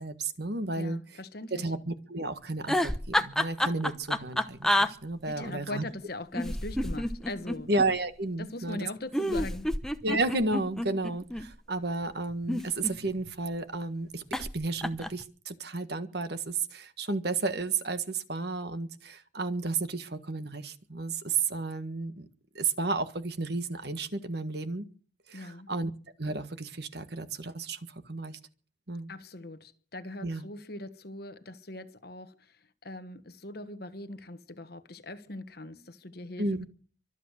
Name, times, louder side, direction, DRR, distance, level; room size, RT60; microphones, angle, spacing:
voice 1, 0.0-1.0 1.5-5.8 7.7-8.9 10.0-22.3 22.5-24.9 25.3-25.9 26.2-28.4 28.9-29.1 30.2-30.5 36.4-36.7, right 3 dB, 55° right, 1.6 m, -32 dB
voice 2, 0.7-1.7 5.3-7.7 8.4-9.7 25.3-25.7 29.1-36.7, left 2 dB, 50° left, 1.4 m, -41 dB
sound 1, 2.6-4.9 6.3-7.9 9.1-11.4 12.3-13.3 14.3-14.5 14.8-15.2, left 1 dB, 5° left, 0.8 m, -29 dB
24.5 x 8.3 x 6.5 m
head